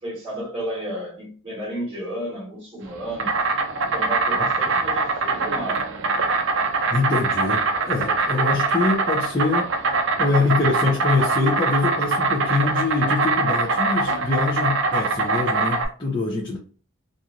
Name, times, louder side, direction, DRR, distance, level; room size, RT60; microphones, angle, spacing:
voice 1, 0.0-3.4 3.8-5.9, right 1 dB, 25° right, 1.5 m, -32 dB
Insect, 2.8-15.9, right 3 dB, 55° right, 0.5 m, -23 dB
voice 2, 6.9-9.7 10.2-16.6, left 3 dB, 20° left, 0.5 m, -24 dB
3.0 x 2.5 x 2.4 m
head